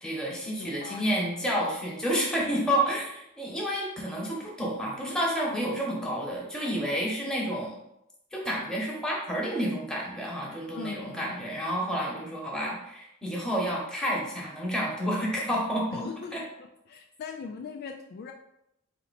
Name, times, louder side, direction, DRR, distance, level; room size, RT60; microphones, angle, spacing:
voice 1, 0.0-7.8 8.3-16.0 16.3-16.4, equal, 5° left, -4 dB, 1.0 m, -30 dB
voice 2, 0.6-1.3 10.7-11.4 15.9-16.5 16.9-18.3, left 5 dB, 45° left, 3 dB, 0.3 m, -40 dB
4.2 x 2.8 x 4.1 m, 0.83 s
head